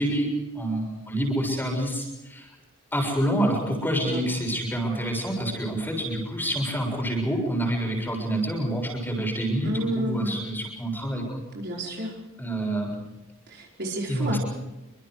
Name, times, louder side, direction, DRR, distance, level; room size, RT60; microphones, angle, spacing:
voice 1, 0.0-2.5 2.9-11.2 12.4-13.0 14.1-14.4, right 1 dB, 10° left, 1 dB, 6.9 m, -27 dB
voice 2, 9.6-10.4 11.5-12.2 13.5-14.4, right 1 dB, 50° right, -1 dB, 5.1 m, -31 dB
28.0 x 25.0 x 4.9 m, 1.0 s
head